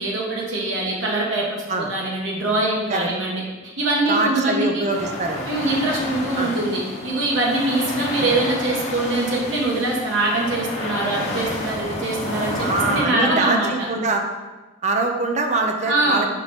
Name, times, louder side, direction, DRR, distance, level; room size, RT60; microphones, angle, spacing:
voice 1, 0.0-3.4 3.8-4.9 5.5-13.9 15.8-16.3, right 2 dB, 75° right, -3 dB, 1.4 m, -23 dB
voice 2, 4.1-5.5 6.4-6.5 12.6-14.2 14.8-16.3, right 3 dB, 35° right, 4 dB, 0.5 m, -23 dB
sound 1, 4.9-13.0, left 1 dB, 35° left, 1.0 m, -30 dB
5.4 x 4.5 x 4.3 m, 1.2 s
head